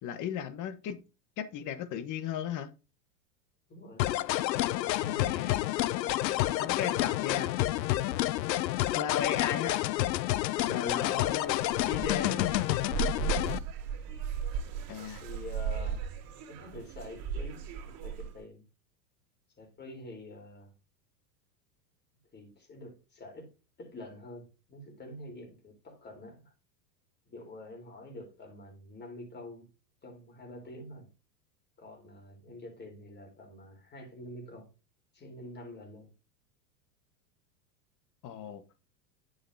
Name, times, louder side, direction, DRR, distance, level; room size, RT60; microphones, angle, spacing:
voice 1, 0.0-1.0 1.4-2.7 5.2-5.6 6.6-7.8 8.9-9.8 10.7-11.6 11.9-12.5 14.9-15.2 38.2-38.6, left 9 dB, 40° left, 1.4 m, -35 dB
voice 2, 3.7-4.1 4.7-5.4 10.6-11.3 13.2-13.5 15.2-16.1 16.5-18.6 19.6-20.7 22.3-23.5 23.8-26.5 27.2-29.7 30.0-31.1 31.8-34.7 35.1-36.1, left 1 dB, 20° left, 3.9 m, -47 dB
sound 1, 4.0-13.6, left 15 dB, 80° left, 0.7 m, -29 dB
sound 2, 11.2-18.4, right 7 dB, 45° right, 3.1 m, -36 dB
10.0 x 7.2 x 2.8 m
hypercardioid pair, 115°, 49 cm